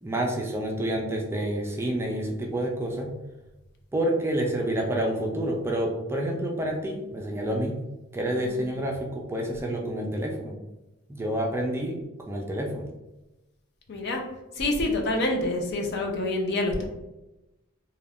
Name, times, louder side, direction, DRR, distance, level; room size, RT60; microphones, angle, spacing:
voice 1, 0.0-3.1 3.9-7.8 8.1-10.5 11.1-12.0 12.3-12.9, right 1 dB, 10° right, 0 dB, 0.3 m, -28 dB
voice 2, 13.9-14.2 14.6-16.8, left 2 dB, 55° left, 2 dB, 0.5 m, -27 dB
2.4 x 2.2 x 3.4 m, 0.98 s
head